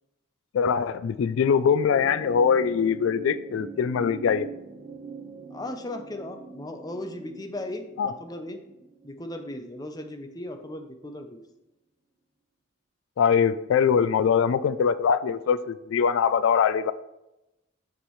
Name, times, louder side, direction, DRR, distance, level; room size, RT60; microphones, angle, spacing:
voice 1, 0.5-4.5 8.0-8.1 13.2-16.9, left 7 dB, 90° left, 15 dB, 0.3 m, -22 dB
sound 1, 1.6-10.2 11.4-11.5, right 5 dB, 35° right, 1.4 m, -43 dB
voice 2, 5.5-8.6 9.0-11.4, left 1 dB, 20° left, 5 dB, 0.6 m, -37 dB
7.3 x 6.9 x 3.1 m, 0.94 s
head